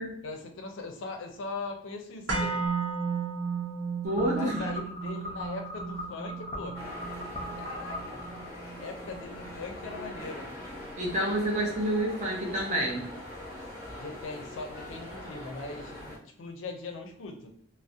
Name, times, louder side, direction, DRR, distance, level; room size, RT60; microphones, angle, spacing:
voice 1, 0.2-2.7 4.3-6.8 7.6-8.2 8.8-10.5 13.9-17.6, left 3 dB, 80° left, 4 dB, 0.4 m, -40 dB
sound 1, 2.3-10.4 10.7-10.8, right 4 dB, 85° right, 0.8 m, -35 dB
sound 2, 4.0-8.8, equal, 25° left, 0.6 m, -40 dB
voice 2, 4.0-4.7 11.0-13.0, right 1 dB, 40° right, -3 dB, 0.5 m, -28 dB
sound 3, 6.7-16.2, left 1 dB, 10° right, 0.9 m, -42 dB
2.3 x 2.0 x 2.6 m, 0.64 s
head